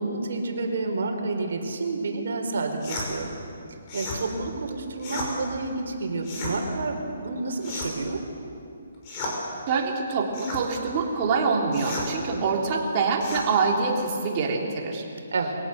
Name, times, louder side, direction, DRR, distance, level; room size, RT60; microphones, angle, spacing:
voice 1, 0.0-3.3 3.9-8.2 12.2-12.4 15.3-15.5, right 3 dB, 65° right, 3 dB, 4.2 m, -29 dB
sound 1, 2.8-3.1 3.9-4.2 5.0-5.3 6.2-6.6 7.6-8.1 9.0-9.4 10.3-10.6 11.7-12.1 13.2-13.5, left 2 dB, 25° left, 5.7 m, -33 dB
voice 2, 9.7-15.0, right 4 dB, 30° right, -1 dB, 3.5 m, -25 dB
24.0 x 17.5 x 8.0 m, 2.6 s
hypercardioid pair, 160°, 0 cm